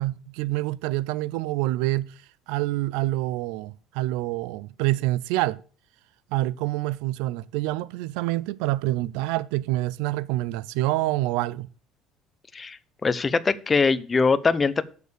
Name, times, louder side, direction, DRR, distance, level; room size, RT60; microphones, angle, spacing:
voice 1, 0.0-2.1 2.5-5.6 6.3-11.7, right 17 dB, 90° right, 0.4 m, -27 dB
voice 2, 12.5-14.8, left 4 dB, 20° left, 0.5 m, -22 dB
6.8 x 6.5 x 6.8 m
cardioid pair, 145°, 0 cm